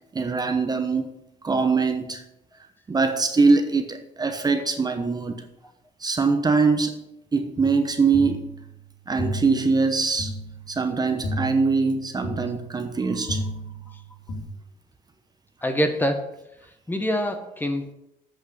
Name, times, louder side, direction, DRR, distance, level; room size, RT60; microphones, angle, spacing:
voice 1, 0.1-1.1 1.4-2.2 2.9-5.4 6.0-7.0 7.3-8.5 9.1-10.3 10.7-13.4, right 4 dB, 25° right, 1.0 m, -22 dB
sound 1, 7.6-14.4, equal, 55° left, 3.0 m, -34 dB
voice 2, 15.6-16.4 16.9-17.9, equal, 10° left, 1.1 m, -25 dB
8.2 x 6.3 x 6.7 m
cardioid pair, 110°, 17 cm